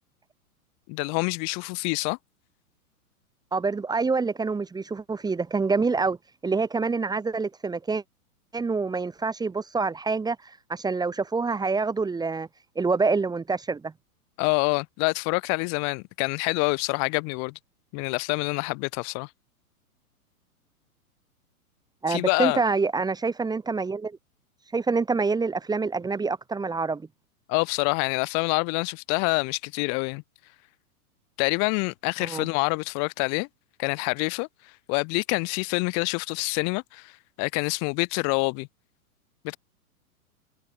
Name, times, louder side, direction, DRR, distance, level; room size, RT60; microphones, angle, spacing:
voice 1, 0.9-2.2 14.4-17.5 17.9-19.3 22.1-22.6 27.5-30.2 31.4-33.5 33.8-34.5 34.9-37.1 37.4-38.7 39.4-39.6, left 36 dB, 35° left, 2.1 m, -26 dB
voice 2, 3.5-6.2 6.4-8.0 8.5-10.4 10.7-12.5 12.7-13.9 22.0-24.2 24.7-27.0 32.2-32.5, right 4 dB, 10° right, 1.7 m, -26 dB
figure-of-eight pair, 110°, 44 cm